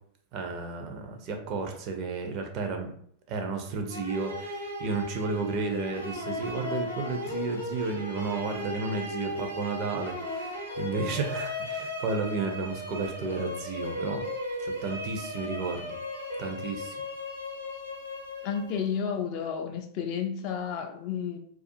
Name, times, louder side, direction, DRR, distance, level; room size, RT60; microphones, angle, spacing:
voice 1, 0.3-2.9 3.3-14.2 14.6-16.0 16.4-17.0, right 4 dB, 40° right, 4 dB, 0.4 m, -32 dB
sound 1, 3.9-19.0, left 1 dB, 90° right, 0.7 m, -36 dB
voice 2, 18.4-21.4, left 7 dB, 45° left, 5 dB, 0.3 m, -31 dB
2.4 x 2.3 x 2.5 m, 0.62 s
figure-of-eight pair, 90°, 0 cm